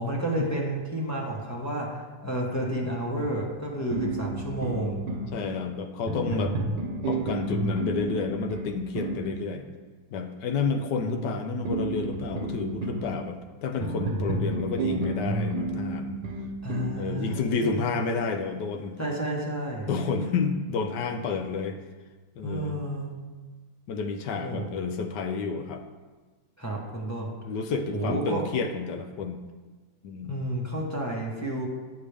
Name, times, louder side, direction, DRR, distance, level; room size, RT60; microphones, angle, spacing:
voice 1, 0.0-5.0 11.0-11.2 11.5-11.6 16.6-17.9 19.0-19.9 22.4-23.1 24.4-24.7 26.6-27.3 27.9-28.4 30.2-31.7, right 1 dB, 15° left, -3 dB, 0.7 m, -31 dB
sound 1, 3.9-5.3 6.1-9.3 11.7-13.1 13.8-17.0, right 2 dB, 70° right, 1.6 m, -30 dB
voice 2, 5.3-6.6 7.1-9.7 10.1-16.2 16.9-19.0 19.8-21.8 22.4-22.7 23.9-25.8 27.4-29.4 30.0-30.3, left 5 dB, 70° left, 5 dB, 1.1 m, -30 dB
9.2 x 6.8 x 3.4 m, 1.3 s
omnidirectional pair, 2.1 m